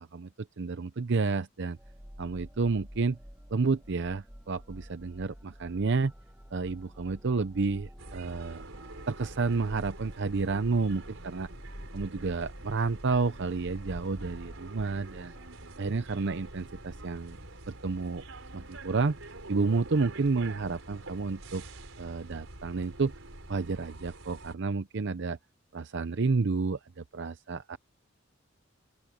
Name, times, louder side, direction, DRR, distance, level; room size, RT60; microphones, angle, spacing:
voice 1, 0.0-1.8 2.2-3.2 3.5-6.1 6.5-8.6 9.1-11.5 11.9-15.3 15.8-17.4 17.7-18.2 18.5-19.2 19.5-21.6 22.0-23.2 23.5-25.4 25.7-27.8, right 4 dB, 60° right, 0.6 m, -30 dB
sound 1, 1.7-15.5, equal, 10° right, 1.7 m, -49 dB
sound 2, 8.0-24.5, right 2 dB, 75° right, 4.8 m, -46 dB
open air
head